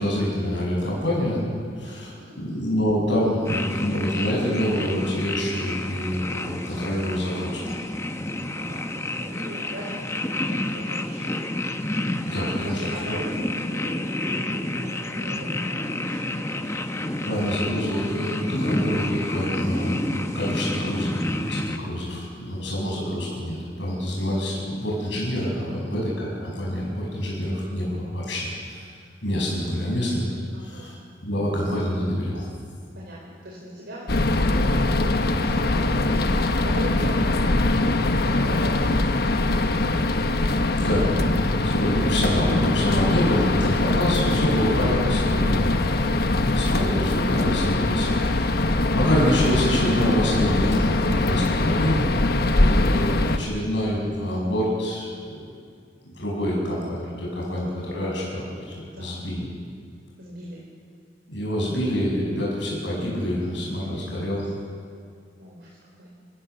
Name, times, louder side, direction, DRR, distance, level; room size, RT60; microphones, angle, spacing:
voice 1, 0.0-7.6 12.2-12.8 13.1-13.2 17.2-28.8 29.2-30.3 30.6-30.9 31.2-32.5 40.7-52.0 52.5-55.5 56.0-59.5 61.3-64.5, equal, 75° left, -3 dB, 6.6 m, -26 dB
voice 2, 1.8-2.5 8.5-11.6 12.6-17.2 25.7-26.0 30.5-30.9 32.9-40.0 51.5-52.0 58.9-59.2 60.2-60.6 63.9-64.2 65.4-66.1, equal, 65° right, -5 dB, 4.5 m, -40 dB
sound 1, 3.4-21.8, left 1 dB, 15° left, 1.0 m, -29 dB
sound 2, 34.1-53.4, left 2 dB, 55° left, 1.2 m, -22 dB
28.0 x 15.5 x 7.0 m, 2.2 s
head